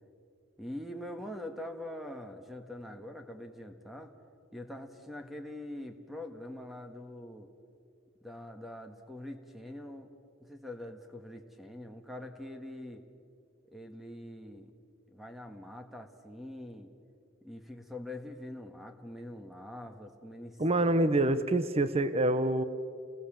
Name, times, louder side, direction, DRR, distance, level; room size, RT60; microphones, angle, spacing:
voice 1, 0.6-4.1 4.5-7.5 8.2-10.1 10.4-13.1 13.7-14.7 15.1-16.9 17.4-21.1, left 1 dB, ahead, 5 dB, 1.5 m, -44 dB
voice 2, 20.6-22.6, right 1 dB, 30° right, 12 dB, 0.8 m, -26 dB
29.0 x 20.5 x 7.4 m, 2.4 s
head